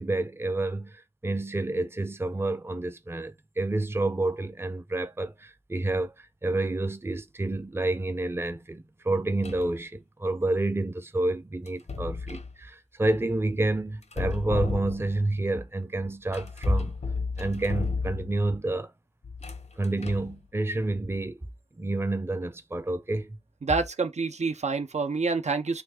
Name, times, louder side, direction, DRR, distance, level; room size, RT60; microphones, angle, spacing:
voice 1, 0.0-16.9 17.4-18.9 19.8-21.4 21.8-23.4, right 2 dB, 20° right, 0.4 m, -29 dB
sound 1, 9.4-9.8 11.7-12.6 14.0-15.3 16.3-18.5 19.2-20.4, left 4 dB, 75° left, 0.6 m, -33 dB
voice 2, 23.6-25.8, right 4 dB, 80° right, 0.5 m, -27 dB
3.2 x 2.4 x 3.5 m
wide cardioid pair, 50°, 11 cm